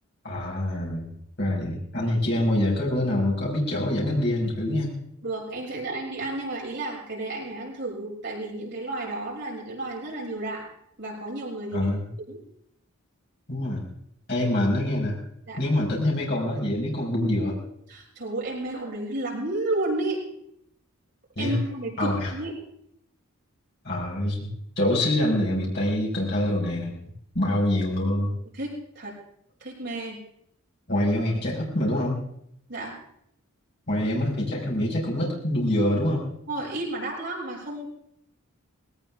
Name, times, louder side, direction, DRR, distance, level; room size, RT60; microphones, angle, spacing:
voice 1, 0.2-1.1 1.4-4.9 11.7-12.1 13.5-13.8 14.3-15.2 15.6-17.6 21.3-21.6 22.0-22.3 23.8-27.0 27.3-28.3 30.9-32.2 33.9-36.2, left 1 dB, 50° left, -4 dB, 5.2 m, -25 dB
voice 2, 5.2-10.6 11.0-11.9 12.3-12.4 15.5-15.6 17.9-20.2 21.4-22.5 27.5-27.6 28.5-29.1 29.6-30.2 32.7-32.9 36.5-37.9, right 2 dB, 55° right, -4 dB, 6.7 m, -32 dB
20.0 x 18.0 x 3.6 m, 0.72 s
head